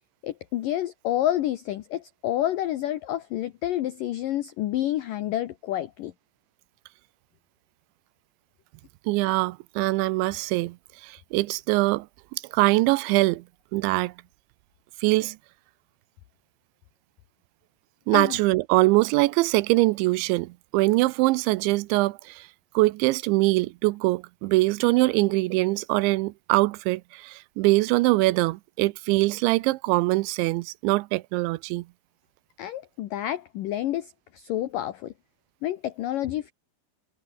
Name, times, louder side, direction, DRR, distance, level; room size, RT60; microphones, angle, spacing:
voice 1, 0.2-6.1 18.1-18.4 32.6-35.1 35.6-36.5, left 13 dB, 85° left, 1.9 m, -29 dB
voice 2, 9.1-10.8 11.0-12.1 12.3-13.4 13.7-14.1 15.0-15.4 18.1-22.5 22.7-31.9, right 21 dB, 80° right, 2.9 m, -23 dB
omnidirectional pair, 5.3 m